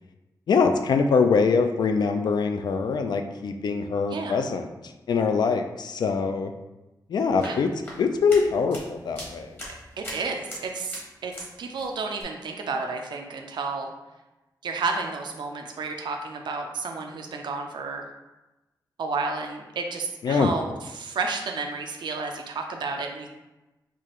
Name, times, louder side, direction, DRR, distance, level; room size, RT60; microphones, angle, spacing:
voice 1, 0.5-4.7 5.1-6.5 7.1-7.7 8.0-9.6 20.2-20.5, left 5 dB, 70° left, 6 dB, 0.3 m, -23 dB
sound 1, 7.2-11.5 11.8-12.2, left 1 dB, 30° left, 1.1 m, -41 dB
voice 2, 10.0-11.3 11.6-13.9 14.6-18.1 19.0-23.3, right 4 dB, 90° right, 3 dB, 0.4 m, -31 dB
4.6 x 2.4 x 3.0 m, 1.0 s
wide cardioid pair, 150°, 8 cm